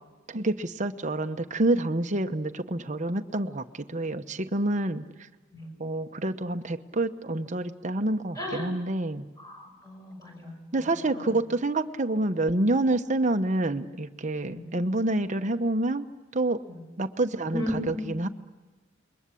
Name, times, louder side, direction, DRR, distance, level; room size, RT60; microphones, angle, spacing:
voice 1, 0.3-5.0 5.8-9.3 10.7-16.1 16.3-16.6 17.0-18.3, right 2 dB, 40° right, 7 dB, 1.0 m, -27 dB
voice 2, 8.4-8.7 9.4-11.4 14.4-14.7 16.7-16.8 17.5-18.2, left 1 dB, 20° left, 1 dB, 6.6 m, -36 dB
28.5 x 22.0 x 8.5 m, 1.2 s
head